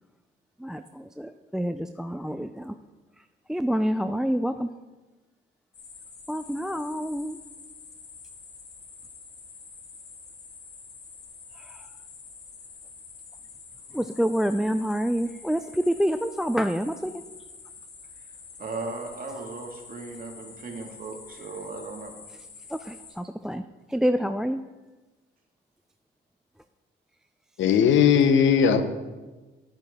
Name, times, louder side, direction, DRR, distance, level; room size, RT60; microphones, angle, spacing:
voice 1, 0.6-2.7 3.5-4.7 6.3-7.4 13.9-17.2 22.7-23.6 23.9-24.6, equal, 5° right, 10 dB, 0.3 m, -27 dB
sound 1, 5.7-23.1, left 5 dB, 55° left, 1.8 m, -47 dB
voice 2, 18.6-22.1, right 3 dB, 45° right, 1 dB, 2.0 m, -37 dB
voice 3, 27.6-28.8, left 7 dB, 75° left, 10 dB, 0.9 m, -18 dB
11.5 x 8.8 x 3.6 m, 1.2 s
cardioid pair, 90°, 20 cm